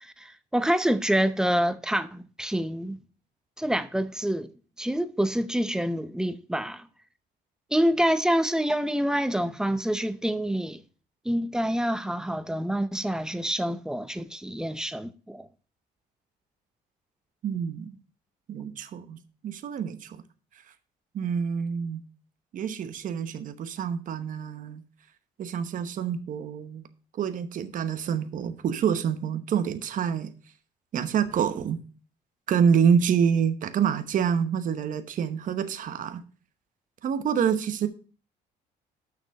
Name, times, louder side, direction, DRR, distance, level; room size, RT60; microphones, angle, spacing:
voice 1, 0.0-3.0 3.6-4.5 4.8-6.9 7.7-10.8 11.2-15.5, equal, 5° right, 0.6 m, -27 dB
voice 2, 17.4-18.0 18.5-19.2 19.4-20.2 21.1-22.0 22.5-24.8 25.4-26.8 27.2-30.3 30.9-31.8 32.5-36.2 37.0-37.9, right 7 dB, 50° right, 1.0 m, -27 dB
6.9 x 6.0 x 6.4 m
cardioid pair, 110°, 17 cm